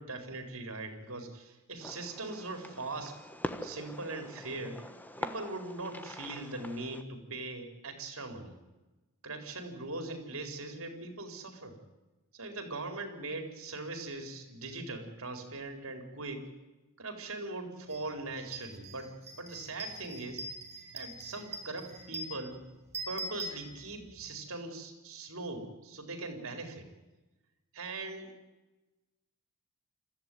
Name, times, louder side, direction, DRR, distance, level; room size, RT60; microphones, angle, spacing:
voice 1, 0.0-3.2 3.6-4.8 5.2-8.6 9.2-11.8 12.3-16.5 17.0-20.4 20.9-22.6 23.1-26.9 27.7-28.3, right 2 dB, 75° right, 5 dB, 4.4 m, -40 dB
Fireworks, 1.8-7.0, left 1 dB, 10° left, 1.2 m, -43 dB
sound 1, 17.9-18.0 18.4-24.2, right 2 dB, 30° right, 4.2 m, -43 dB
26.5 x 15.0 x 9.3 m, 1.1 s
head